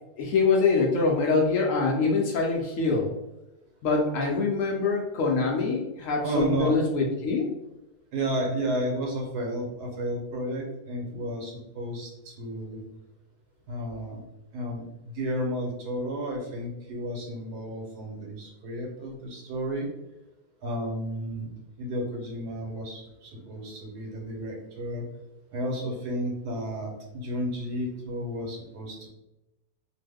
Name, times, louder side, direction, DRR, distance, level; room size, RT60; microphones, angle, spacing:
voice 1, 0.2-3.1 3.8-7.5, left 4 dB, 70° left, -1 dB, 0.8 m, -24 dB
voice 2, 6.2-6.8 8.1-12.8 13.7-14.2 14.5-19.9 20.6-21.5 21.8-25.1 25.5-29.1, right 1 dB, 90° right, 0 dB, 1.4 m, -32 dB
2.9 x 2.2 x 3.3 m, 0.93 s
omnidirectional pair, 1.7 m